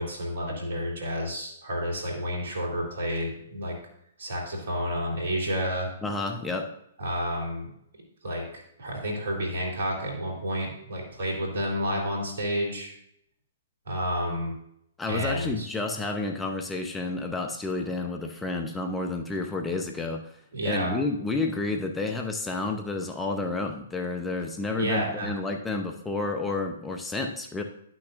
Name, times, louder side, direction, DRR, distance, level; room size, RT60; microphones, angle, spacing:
voice 1, 0.0-3.8 4.2-5.9 7.0-7.7 7.9-8.5 8.8-12.9 13.9-14.5 15.1-15.7 20.5-21.0 24.8-25.3, equal, 70° right, -1 dB, 2.8 m, -30 dB
voice 2, 6.0-6.7 15.0-20.4 20.6-27.6, left 3 dB, 10° left, 2 dB, 0.7 m, -30 dB
11.5 x 6.1 x 2.5 m, 0.74 s
figure-of-eight pair, 120°, 0 cm